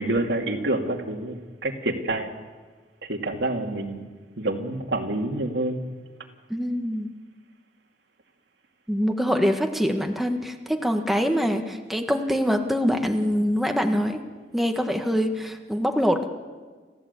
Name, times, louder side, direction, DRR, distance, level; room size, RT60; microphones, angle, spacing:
voice 1, 0.0-2.3 3.1-4.1 4.4-5.8, right 2 dB, 85° right, 2 dB, 2.6 m, -27 dB
voice 2, 6.5-7.1 8.9-14.2 14.5-16.3, equal, ahead, 4 dB, 1.5 m, -24 dB
28.5 x 14.5 x 8.4 m, 1.4 s
head